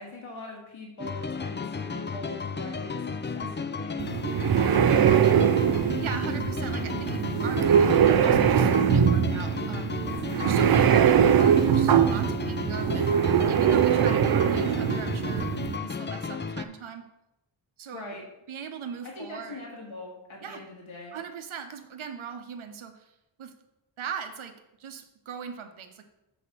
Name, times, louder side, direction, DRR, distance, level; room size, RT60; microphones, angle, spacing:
voice 1, 0.0-4.0 4.5-4.9 17.9-18.2 19.0-21.2, left 2 dB, 85° left, -2 dB, 1.8 m, -42 dB
sound 1, 1.0-16.7, left 5 dB, 25° left, 0.4 m, -34 dB
sound 2, 4.0-15.8, right 8 dB, 50° right, 0.5 m, -22 dB
voice 2, 6.0-10.0 10.4-13.1 13.5-15.5 15.8-17.0 17.8-18.1 18.5-19.6 20.4-20.6 21.1-23.0 23.4-23.5 24.0-24.5 24.8-26.0, right 7 dB, 85° right, 7 dB, 0.9 m, -40 dB
6.9 x 4.2 x 6.1 m, 0.90 s
wide cardioid pair, 75°, 47 cm